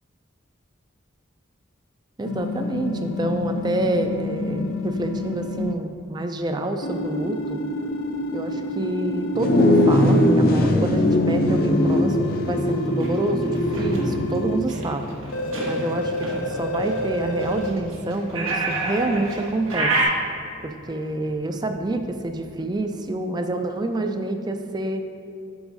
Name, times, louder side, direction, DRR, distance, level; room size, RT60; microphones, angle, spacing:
voice 1, 2.2-7.6 8.3-15.2 15.6-20.0 20.6-25.0, right 2 dB, 20° right, 6 dB, 0.4 m, -27 dB
sound 1, 2.3-5.7 6.8-10.3 11.5-14.6 15.3-17.7, left 1 dB, 90° left, 0.5 m, -29 dB
sound 2, 9.3-18.9, left 1 dB, 45° left, 0.6 m, -22 dB
sound 3, 12.9-20.0, right 2 dB, 85° right, 1.6 m, -29 dB
9.6 x 7.1 x 2.6 m, 2.6 s
head